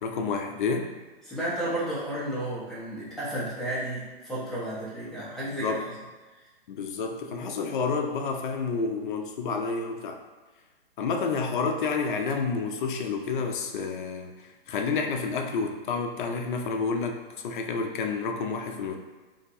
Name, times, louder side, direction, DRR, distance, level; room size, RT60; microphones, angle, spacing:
voice 1, 0.0-0.9 5.4-5.8 6.7-10.2 11.0-18.9, left 4 dB, 55° left, 4 dB, 0.5 m, -29 dB
voice 2, 1.2-5.8, right 1 dB, ahead, -10 dB, 0.5 m, -32 dB
2.7 x 2.2 x 4.0 m, 1.3 s
hypercardioid pair, 140°, 30 cm